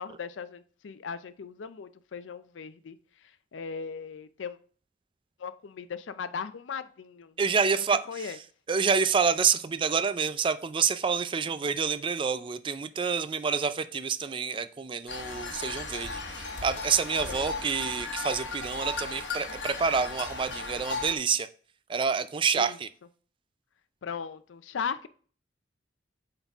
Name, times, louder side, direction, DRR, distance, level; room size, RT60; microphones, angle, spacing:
voice 1, 0.0-3.0 3.5-4.6 5.4-7.3 7.6-7.7 8.1-8.4 17.3-17.5 22.5-22.8 24.0-25.1, left 6 dB, 90° left, 14 dB, 0.5 m, -38 dB
voice 2, 7.4-8.4 8.7-21.5 21.9-22.9, right 6 dB, 25° right, 14 dB, 0.3 m, -28 dB
sound 1, 15.1-21.1, left 3 dB, 70° left, 1.2 m, -36 dB
8.0 x 3.9 x 3.5 m, 0.43 s
head